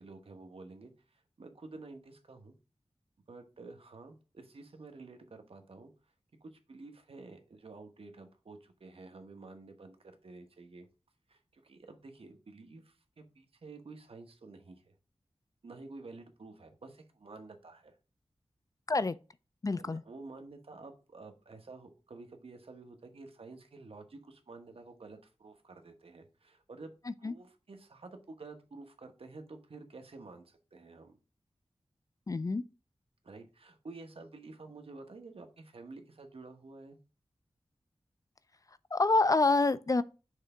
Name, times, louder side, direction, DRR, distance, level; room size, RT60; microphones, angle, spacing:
voice 1, 0.0-2.6 3.3-5.9 6.4-10.9 11.3-14.9 15.6-17.9 19.8-26.9 27.2-31.2 33.2-37.0, right 3 dB, 65° right, 1.1 m, -50 dB
voice 2, 19.6-20.0 27.2-27.3 32.3-32.6 38.9-40.0, left 3 dB, 35° left, 0.3 m, -27 dB
6.5 x 3.4 x 4.9 m
wide cardioid pair, 65°, 10 cm